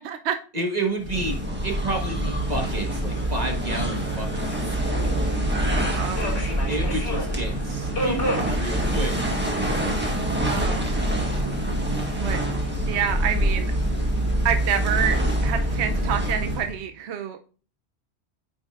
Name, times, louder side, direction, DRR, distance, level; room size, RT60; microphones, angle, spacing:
voice 1, 0.0-0.4 5.7-6.4 10.5-11.2 12.2-12.4 12.9-13.7 14.4-15.2 15.4-17.4, right 8 dB, 75° right, 7 dB, 0.9 m, -28 dB
voice 2, 0.5-1.4 1.6-4.8 6.7-9.2, right 2 dB, 40° right, 2 dB, 1.4 m, -30 dB
sound 1, 1.0-16.8, right 1 dB, 10° right, 1.4 m, -25 dB
Subway metro underground, 2.5-16.3, left 1 dB, 60° left, 2.0 m, -36 dB
9.1 x 5.3 x 2.4 m, 0.39 s
omnidirectional pair, 1.1 m